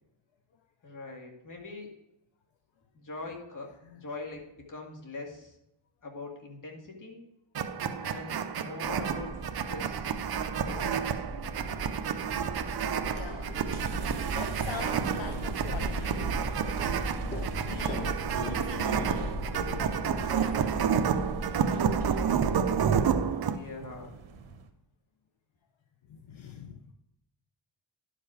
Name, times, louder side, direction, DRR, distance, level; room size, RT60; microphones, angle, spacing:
voice 1, 0.8-1.9 2.9-5.6 6.0-7.2 8.0-10.1 10.6-11.2 23.5-24.2, left 2 dB, 40° left, 1 dB, 2.0 m, -43 dB
sound 1, 7.5-23.6, right 7 dB, 50° right, 0.7 m, -30 dB
sound 2, 8.8-23.1, right 1 dB, 15° left, 3.2 m, -37 dB
voice 2, 11.6-12.0 12.9-14.0 14.3-16.4 17.6-19.3 19.6-20.2 26.1-26.9, left 7 dB, 70° left, 6 dB, 0.8 m, -43 dB
sound 3, 13.7-24.7, right 6 dB, 75° right, 1.1 m, -45 dB
11.0 x 5.2 x 4.9 m, 0.84 s
cardioid pair, 105°, 49 cm